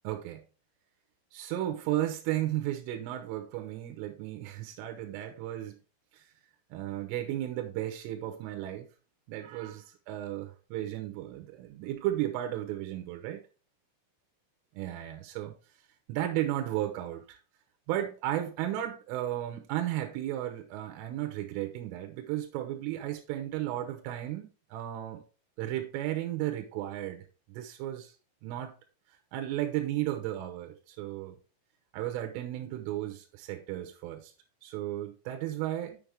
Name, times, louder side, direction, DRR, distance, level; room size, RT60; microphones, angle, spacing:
voice 1, 0.1-0.4 1.3-5.8 6.1-6.2 6.7-8.9 9.3-13.4 14.8-15.5 16.1-17.4 17.9-25.2 25.6-28.1 28.4-28.7 29.3-31.4 31.9-34.3 34.6-36.0, right 13 dB, 80° right, 3.4 m, -34 dB
7.7 x 6.5 x 3.4 m
omnidirectional pair, 5.9 m